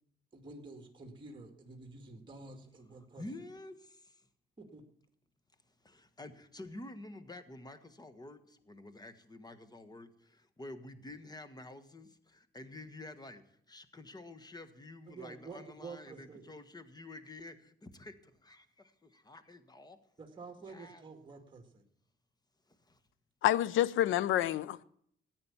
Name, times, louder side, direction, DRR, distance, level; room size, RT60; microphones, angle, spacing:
voice 1, 0.3-3.2 4.6-4.8 15.1-16.4 20.2-21.8, right 3 dB, 25° right, 2.2 m, -49 dB
voice 2, 3.2-4.3 5.8-20.0 20.7-21.0 22.7-23.0, left 2 dB, 20° left, 1.5 m, -49 dB
voice 3, 23.4-24.8, left 12 dB, 80° left, 0.7 m, -28 dB
14.0 x 9.8 x 7.2 m
cardioid pair, 90°, 20 cm